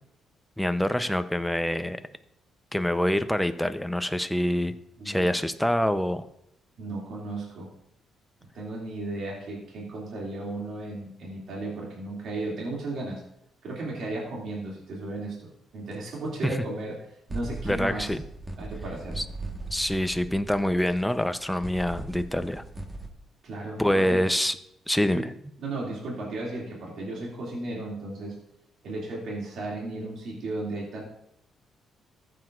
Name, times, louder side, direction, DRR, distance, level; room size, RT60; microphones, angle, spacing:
voice 1, 0.6-2.0 2.7-4.8 5.0-6.3 16.4-16.5 17.6-18.2 19.2-19.3 19.7-22.6 23.8-24.5 24.9-25.3, left 1 dB, 5° left, 10 dB, 0.7 m, -26 dB
voice 2, 5.0-5.3 6.8-7.7 8.5-13.2 13.6-17.0 17.3-18.2 18.6-19.2 23.4-24.2 25.1-25.2 25.6-28.4 28.8-31.0, right 2 dB, 70° right, -3 dB, 2.5 m, -35 dB
sound 1, 15.9-16.0 17.3-23.1, right 2 dB, 20° right, 1.4 m, -39 dB
14.5 x 8.0 x 2.5 m, 0.79 s
cardioid pair, 90°, 0 cm